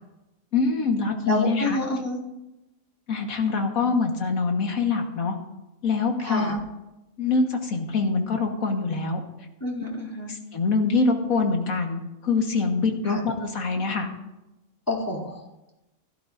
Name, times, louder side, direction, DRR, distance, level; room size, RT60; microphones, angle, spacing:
voice 1, 0.5-1.8 3.1-5.4 5.8-6.6 7.2-9.2 10.3-14.1, left 4 dB, 85° left, 3 dB, 1.9 m, -24 dB
voice 2, 1.3-2.2 6.2-6.5 9.6-10.3 13.0-13.2 14.9-15.4, left 1 dB, 15° left, -6 dB, 3.0 m, -28 dB
16.5 x 12.5 x 2.6 m, 0.96 s
omnidirectional pair, 1.4 m